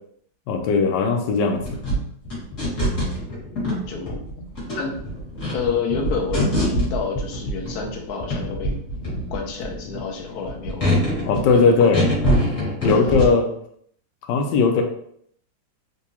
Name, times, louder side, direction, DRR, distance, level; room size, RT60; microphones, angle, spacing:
voice 1, 0.5-1.8 11.2-12.1 12.8-13.5 14.3-14.8, left 4 dB, 85° left, 3 dB, 1.3 m, -18 dB
sound 1, 1.5-7.9 8.2-13.3, equal, 45° left, 1.9 m, -24 dB
voice 2, 3.9-4.2 4.7-4.9 5.5-8.8 9.3-10.9 11.5-11.9 12.8-13.2, left 5 dB, 70° left, 2 dB, 1.1 m, -29 dB
3.9 x 2.7 x 2.7 m, 0.68 s
omnidirectional pair, 1.9 m